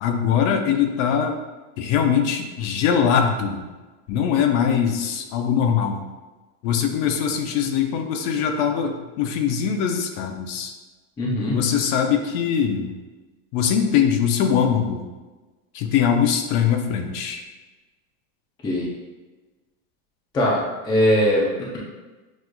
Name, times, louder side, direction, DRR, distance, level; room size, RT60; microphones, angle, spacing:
voice 1, 0.0-1.4 1.8-3.6 4.1-6.0 6.6-10.7 11.5-12.9 13.5-15.0 15.7-17.4, left 7 dB, 55° left, 5 dB, 0.6 m, -22 dB
voice 2, 11.2-11.6 18.6-18.9 20.3-21.8, equal, 10° left, -4 dB, 0.3 m, -21 dB
6.2 x 2.3 x 2.2 m, 1.2 s
supercardioid pair, 140°, 42 cm